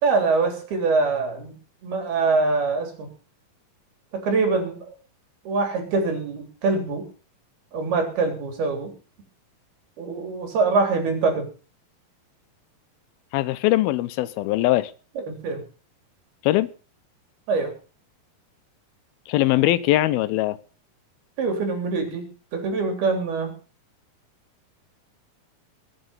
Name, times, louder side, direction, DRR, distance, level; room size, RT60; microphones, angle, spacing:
voice 1, 0.0-1.6 1.8-3.1 4.1-4.9 5.5-7.1 7.7-8.9 10.0-11.5 15.2-15.6 17.5-17.7 21.4-22.2 22.5-23.5, right 4 dB, 90° right, 5 dB, 5.4 m, -24 dB
voice 2, 13.3-14.9 16.4-16.7 19.3-20.6, left 15 dB, 80° left, 16 dB, 2.7 m, -21 dB
22.0 x 7.9 x 5.5 m, 0.37 s
omnidirectional pair, 4.3 m